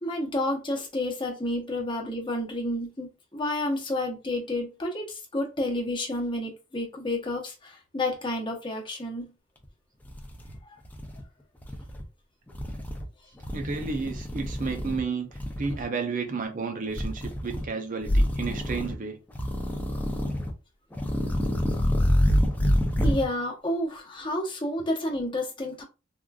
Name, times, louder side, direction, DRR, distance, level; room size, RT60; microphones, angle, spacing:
voice 1, 0.0-3.1 3.3-9.3 10.7-10.8 23.0-25.8, left 1 dB, 25° left, 0.8 m, -30 dB
sound 1, 9.6-9.7 10.1-11.2 11.6-12.0 12.5-13.1 13.4-15.0 15.3-15.8 16.9-17.7 18.0-19.0 19.3-20.5 20.9-23.3, equal, 10° left, 0.4 m, -27 dB
voice 2, 13.5-15.3 15.6-19.2, right 4 dB, 40° right, 0.5 m, -32 dB
3.6 x 2.4 x 2.3 m
head